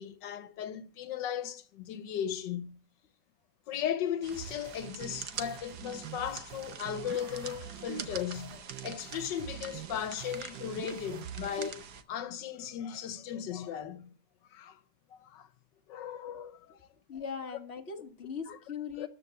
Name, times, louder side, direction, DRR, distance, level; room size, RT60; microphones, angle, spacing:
voice 1, 0.0-2.8 3.7-14.1 14.5-14.8 15.1-15.5 15.9-16.8 18.5-18.6 19.0-19.1, left 9 dB, 90° left, 1.6 m, -37 dB
sound 1, 4.2-12.0, right 7 dB, 65° right, 1.6 m, -45 dB
sound 2, 4.3-11.7, right 12 dB, 85° right, 1.5 m, -45 dB
voice 2, 17.1-19.1, left 6 dB, 40° left, 1.8 m, -39 dB
13.5 x 4.8 x 8.4 m
omnidirectional pair, 1.9 m